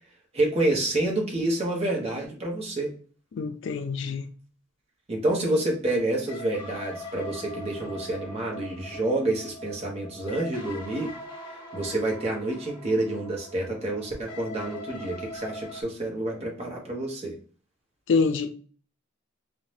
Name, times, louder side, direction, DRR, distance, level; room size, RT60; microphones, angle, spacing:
voice 1, 0.3-2.9 5.1-11.1 11.7-17.3, right 1 dB, 30° right, 0.7 m, -28 dB
voice 2, 3.3-4.2 18.1-18.5, left 4 dB, 65° left, 0.4 m, -25 dB
sound 1, 6.3-15.8, left 1 dB, 25° left, 0.7 m, -42 dB
2.6 x 2.1 x 3.1 m
head